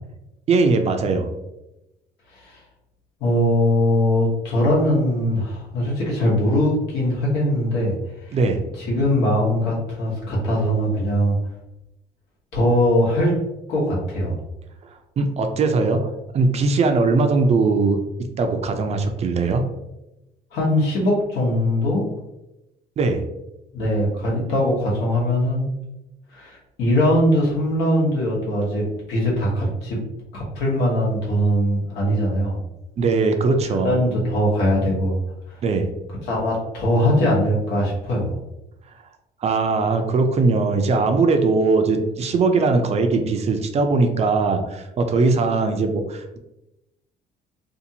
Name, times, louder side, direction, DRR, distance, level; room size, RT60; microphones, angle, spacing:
voice 1, 0.5-1.3 8.3-8.6 15.2-16.1 16.3-18.0 18.4-19.6 23.0-23.2 33.0-33.9 35.6-35.9 39.4-46.4, right 3 dB, 40° right, 6 dB, 0.4 m, -20 dB
voice 2, 3.2-8.0 8.2-8.4 8.8-11.4 12.5-13.3 13.7-14.4 20.5-22.1 23.7-25.7 26.3-30.0 30.3-32.6 33.7-35.2 35.5-35.6 36.2-38.3, equal, 85° left, -4 dB, 1.1 m, -21 dB
2.6 x 2.4 x 2.7 m, 0.94 s
cardioid pair, 110°, 17 cm